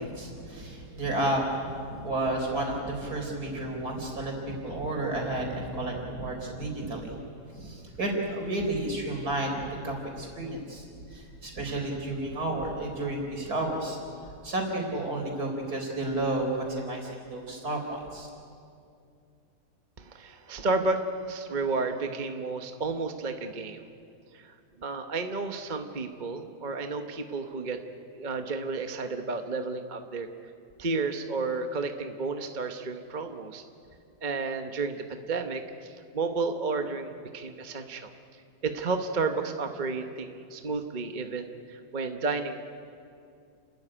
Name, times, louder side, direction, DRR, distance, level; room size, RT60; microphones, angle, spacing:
voice 1, 0.0-1.4 1.9-7.2 7.5-10.8 11.1-14.0 14.4-18.3, right 2 dB, 50° right, 1 dB, 4.6 m, -31 dB
voice 2, 20.0-23.8 24.3-24.5 24.8-27.8 28.2-30.3 30.8-33.6 34.2-38.1 38.6-42.6, right 3 dB, 30° right, 6 dB, 0.9 m, -32 dB
30.0 x 13.5 x 10.0 m, 2.4 s
omnidirectional pair, 2.1 m